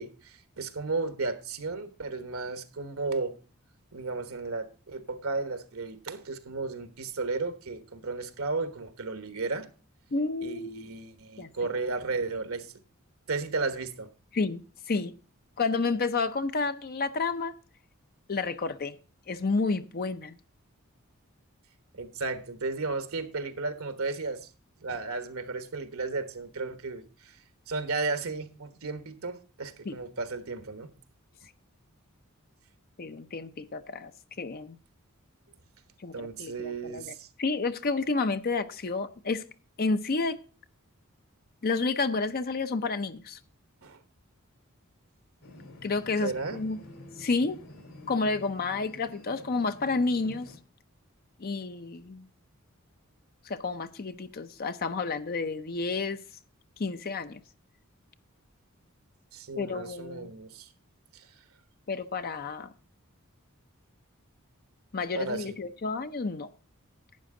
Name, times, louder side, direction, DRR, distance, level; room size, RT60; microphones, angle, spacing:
voice 1, 0.0-3.4 3.9-9.7 10.4-12.7 13.3-14.1 21.9-24.5 24.8-27.4 27.7-30.9 36.1-37.3 43.8-44.0 46.2-46.6 59.3-60.7 61.1-61.3 65.1-65.6, right 3 dB, 75° right, 1.3 m, -34 dB
voice 2, 10.1-10.8 11.4-11.5 14.3-14.6 14.9-15.1 15.6-17.6 18.3-19.0 19.3-20.3 29.9-30.0 33.0-34.1 34.4-34.8 36.0-37.1 37.4-39.4 39.8-40.4 41.6-43.4 45.8-46.8 47.2-47.6 48.1-50.5 51.4-52.2 53.5-56.2 56.8-57.4 59.6-60.3 61.9-62.7 64.9-66.5, left 3 dB, 45° left, 0.6 m, -30 dB
sound 1, 45.4-50.6, left 1 dB, 75° left, 3.1 m, -49 dB
12.0 x 9.2 x 3.7 m
head